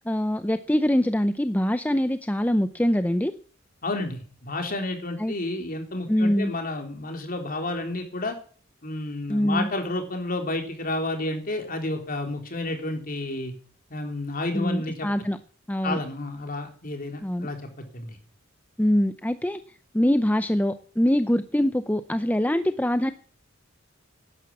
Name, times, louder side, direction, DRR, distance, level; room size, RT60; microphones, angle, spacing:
voice 1, 0.0-3.3 5.2-5.3 6.1-6.5 9.3-9.7 14.5-15.4 15.7-16.0 17.2-17.5 18.8-19.6 19.9-23.1, equal, 10° left, 10 dB, 0.6 m, -23 dB
voice 2, 3.8-8.4 8.8-13.5 13.9-15.1 15.8-17.6 17.9-18.2, left 2 dB, 45° left, 4 dB, 3.6 m, -31 dB
12.0 x 11.0 x 8.4 m, 0.44 s
head